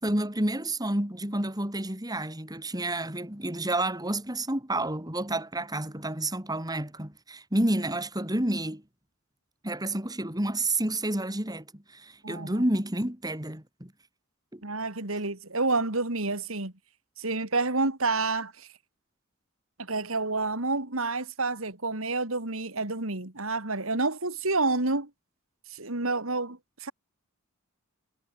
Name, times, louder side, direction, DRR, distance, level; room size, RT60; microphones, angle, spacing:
voice 1, 0.0-8.8 9.6-13.9 14.5-14.6, right 1 dB, 20° right, 5.2 m, -30 dB
voice 2, 12.2-12.6 14.6-16.7 17.2-18.7 19.8-25.1 25.7-26.9, right 3 dB, 75° right, 3.4 m, -29 dB
head